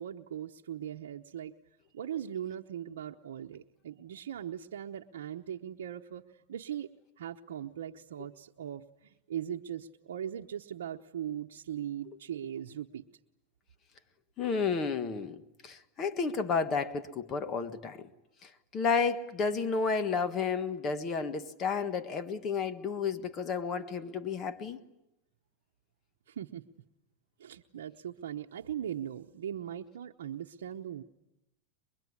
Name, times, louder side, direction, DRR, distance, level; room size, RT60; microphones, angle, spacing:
voice 1, 0.0-1.5 1.9-13.0 26.3-26.7 27.4-31.0, right 10 dB, 85° right, 0.9 m, -40 dB
voice 2, 14.4-18.1 18.4-24.8, left 5 dB, 35° left, 1.7 m, -32 dB
23.5 x 23.0 x 9.7 m
hypercardioid pair, 120°, 0 cm